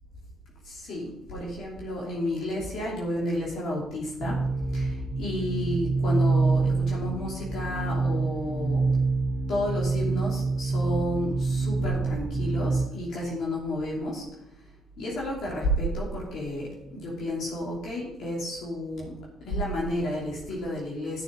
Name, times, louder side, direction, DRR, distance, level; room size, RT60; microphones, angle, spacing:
voice 1, 0.6-4.4 4.7-8.9 9.5-14.2 15.0-19.1 19.4-21.2, equal, 60° left, -4 dB, 3.1 m, -31 dB
sound 1, 4.2-12.8, right 3 dB, 50° right, 1.2 m, -26 dB
11.5 x 6.7 x 5.5 m, 0.86 s
hypercardioid pair, 50°, 0 cm